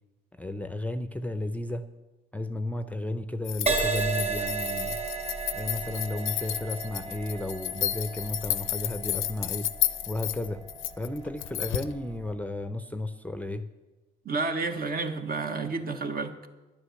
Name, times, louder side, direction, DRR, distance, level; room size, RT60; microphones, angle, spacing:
voice 1, 0.4-1.9 2.3-5.0 5.5-9.7 10.1-10.6 11.0-13.7, left 2 dB, 5° left, 9 dB, 0.6 m, -33 dB
sound 1, 3.4-11.9, left 13 dB, 85° left, 0.6 m, -32 dB
Crash cymbal, 3.7-11.3 12.0-12.3, right 5 dB, 35° right, 3.0 m, -34 dB
voice 2, 14.2-16.3, right 3 dB, 50° right, 6 dB, 1.2 m, -30 dB
10.5 x 9.8 x 6.4 m, 1.2 s
cardioid pair, 90°, 20 cm